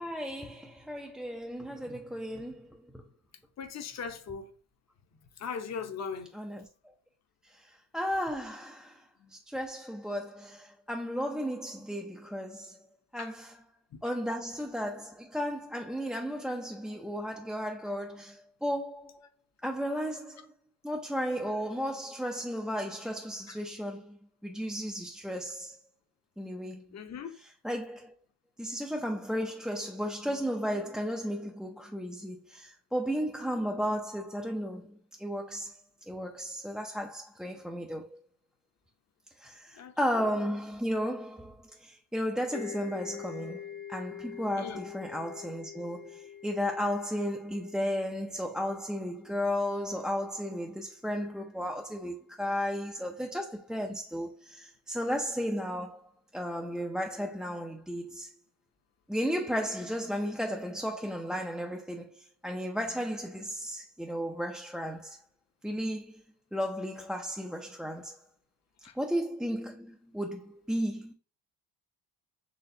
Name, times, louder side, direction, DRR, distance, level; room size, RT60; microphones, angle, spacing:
voice 1, 0.0-3.0 6.3-6.6 7.4-9.0 9.3-12.8 13.1-13.6 14.0-19.3 19.6-20.5 20.8-24.2 24.4-25.8 26.4-26.8 27.6-28.1 28.6-35.8 36.1-38.1 39.4-56.0 56.3-58.3 59.1-65.2 65.6-66.2 66.5-68.2 69.0-71.1, equal, ahead, 0.3 m, -34 dB
voice 2, 3.6-4.5 5.4-6.3 9.2-9.3 13.2-13.3 23.5-23.6 26.9-27.3 39.7-40.3 44.6-44.8 65.7-65.8 68.8-68.9, left 6 dB, 40° left, 0.7 m, -39 dB
sound 1, 42.5-50.1, left 9 dB, 80° left, 1.3 m, -46 dB
4.2 x 3.1 x 2.6 m
cardioid pair, 95°, 41 cm